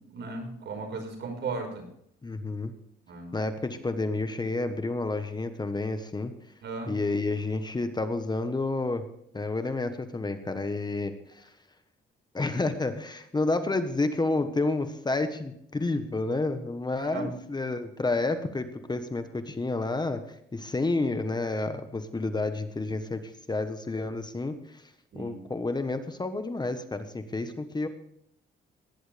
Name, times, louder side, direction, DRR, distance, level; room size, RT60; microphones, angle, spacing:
voice 1, 0.1-1.8 3.1-3.3 6.6-6.9 17.0-17.3 25.1-25.4, right 4 dB, 65° right, 4 dB, 5.2 m, -36 dB
voice 2, 2.2-2.7 3.3-6.3 6.9-9.0 9.3-11.5 12.3-24.8 25.1-27.9, left 2 dB, 20° left, 9 dB, 1.3 m, -30 dB
18.0 x 11.0 x 3.5 m, 0.72 s
cardioid pair, 90°, 20 cm